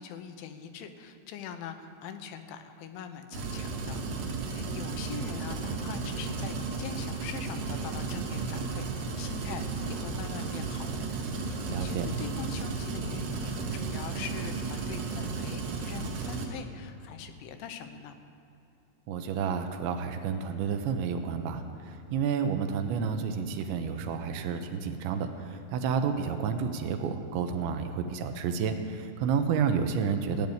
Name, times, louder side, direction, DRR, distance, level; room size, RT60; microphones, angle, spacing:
voice 1, 0.0-4.0 4.4-18.1, left 7 dB, 90° left, 8 dB, 3.3 m, -43 dB
sound 1, 3.3-16.5, right 4 dB, 60° right, 2.9 m, -34 dB
voice 2, 11.7-12.1 19.1-30.5, right 6 dB, 80° right, 6 dB, 3.2 m, -30 dB
16.5 x 8.8 x 9.4 m, 2.9 s
omnidirectional pair, 5.3 m